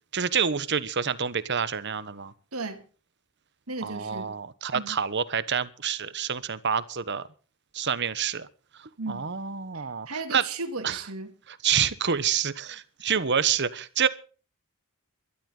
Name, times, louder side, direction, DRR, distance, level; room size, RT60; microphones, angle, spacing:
voice 1, 0.1-2.3 3.8-7.3 7.7-8.5 9.1-10.4 10.8-11.0 11.6-14.1, right 7 dB, 55° right, 1.1 m, -27 dB
voice 2, 2.5-2.8 3.7-4.3 4.7-5.0 9.0-9.3 9.7-11.3, right 3 dB, 90° right, 2.7 m, -35 dB
21.0 x 12.5 x 3.9 m
head